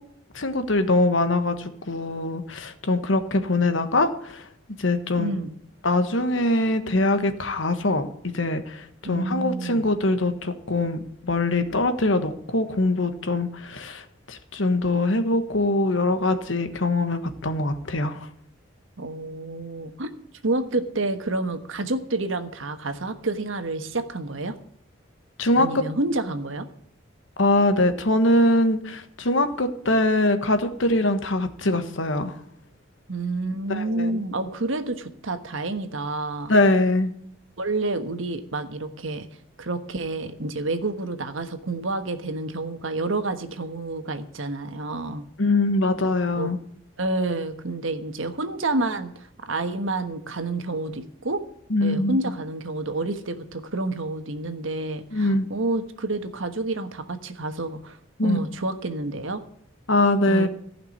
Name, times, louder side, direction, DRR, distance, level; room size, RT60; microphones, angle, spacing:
voice 1, 0.3-4.5 4.8-5.3 5.8-18.3 25.4-25.8 27.4-32.4 33.7-34.2 36.5-37.1 45.4-46.6 51.7-52.3 55.1-55.5 58.2-58.4 59.9-60.5, left 2 dB, 65° left, 9 dB, 1.3 m, -23 dB
voice 2, 5.2-5.5 9.0-9.8 19.0-20.1 20.4-24.6 25.6-26.6 33.1-36.5 37.6-39.3 39.6-45.2 46.4-46.5 47.0-51.4 51.8-58.0 58.2-59.4 60.3-60.5, right 2 dB, 75° right, 9 dB, 1.3 m, -29 dB
15.0 x 5.9 x 9.7 m, 0.67 s
head